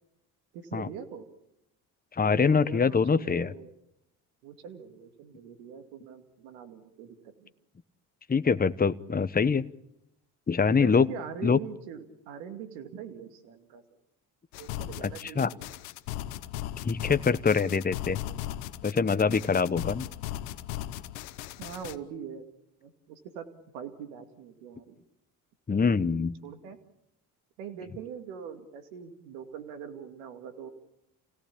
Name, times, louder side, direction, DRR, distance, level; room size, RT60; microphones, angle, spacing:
voice 1, 0.5-1.3 2.3-3.7 4.4-7.5 10.8-13.8 14.6-15.7 21.6-22.5 22.8-23.5 23.7-25.0 26.4-26.8 27.6-30.7, right 8 dB, 85° right, 8 dB, 2.4 m, -42 dB
voice 2, 2.2-3.5 8.3-9.7 10.5-11.1 11.4-11.6 15.0-15.5 16.8-18.2 18.8-20.1 25.7-26.3, left 5 dB, 20° left, 13 dB, 1.0 m, -24 dB
sound 1, 14.5-22.0, left 13 dB, 85° left, 1.0 m, -37 dB
28.5 x 17.5 x 8.6 m, 0.86 s
hypercardioid pair, 60°, 42 cm